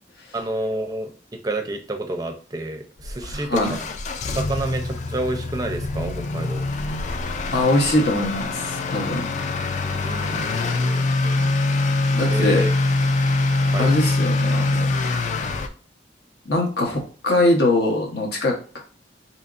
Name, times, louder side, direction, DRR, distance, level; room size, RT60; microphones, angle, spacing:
voice 1, 0.3-3.9 4.4-6.7 9.8-11.5 12.3-12.7 13.7-13.9, right 1 dB, 20° right, 5 dB, 0.5 m, -30 dB
Motor vehicle (road) / Accelerating revving vroom, 3.0-15.7, left 2 dB, 40° left, 0.4 m, -24 dB
voice 2, 3.3-3.7 7.5-9.3 12.1-12.6 13.8-14.9 16.5-18.8, left 1 dB, 65° left, 1 dB, 1.0 m, -22 dB
4.1 x 2.9 x 2.5 m, 0.40 s
head